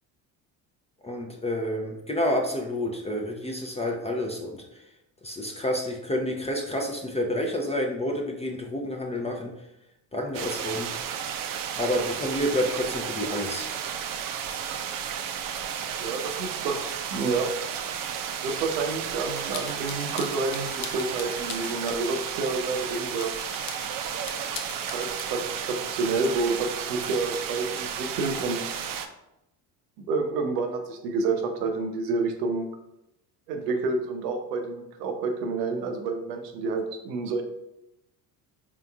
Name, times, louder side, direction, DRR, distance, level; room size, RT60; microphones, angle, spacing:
voice 1, 1.0-4.6 5.2-9.5 10.1-10.9 11.8-13.7, left 1 dB, 15° left, 1 dB, 0.5 m, -29 dB
sound 1, 10.3-29.1, right 8 dB, 45° right, 0.5 m, -33 dB
voice 2, 16.0-17.5 18.4-23.3 24.8-28.7 30.0-32.7 33.5-37.4, right 3 dB, 85° right, 5 dB, 0.7 m, -29 dB
sound 2, 19.3-22.4 23.0-25.2, left 7 dB, 65° left, 0.7 m, -41 dB
3.7 x 3.7 x 2.3 m, 0.87 s
hypercardioid pair, 65°, 47 cm